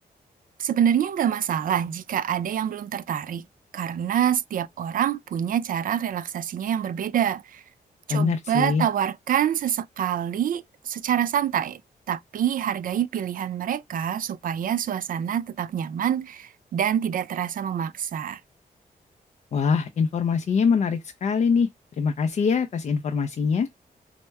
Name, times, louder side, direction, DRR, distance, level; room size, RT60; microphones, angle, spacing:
voice 1, 0.6-3.4 3.7-7.6 8.1-11.8 12.1-18.4, right 9 dB, 60° right, 0.4 m, -26 dB
voice 2, 8.1-8.8 19.5-21.7 22.0-23.7, left 5 dB, 45° left, 0.4 m, -23 dB
4.4 x 2.1 x 4.4 m
wide cardioid pair, 170°, 16 cm